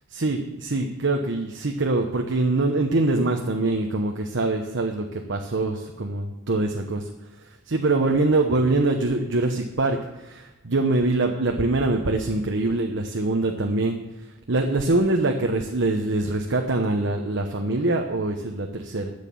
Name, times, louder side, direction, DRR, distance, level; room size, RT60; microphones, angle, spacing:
voice 1, 0.1-7.1 7.4-19.1, right 2 dB, 60° right, 3 dB, 1.0 m, -24 dB
12.5 x 8.3 x 7.0 m, 1.1 s
head